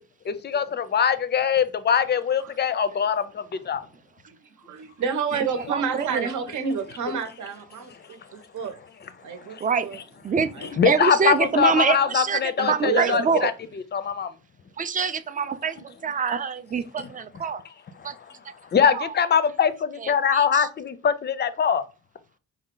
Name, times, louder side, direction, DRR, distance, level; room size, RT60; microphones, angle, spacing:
voice 1, 0.3-3.8 9.5-9.6 10.6-14.3 17.0-17.1 18.7-21.8, left 7 dB, 35° left, 0.5 m, -23 dB
voice 2, 4.3-8.8 9.2-10.0 10.5-10.7 11.6-11.7 12.6-13.4, right 6 dB, 70° right, 1.0 m, -30 dB
voice 3, 5.7-6.3 9.6-9.9 10.2-10.5 10.8-13.5 14.8-17.6 18.0-18.1 18.9-19.1 20.0-20.7, right 6 dB, 25° right, 0.4 m, -25 dB
5.2 x 2.3 x 3.8 m
cardioid pair, 130°, 31 cm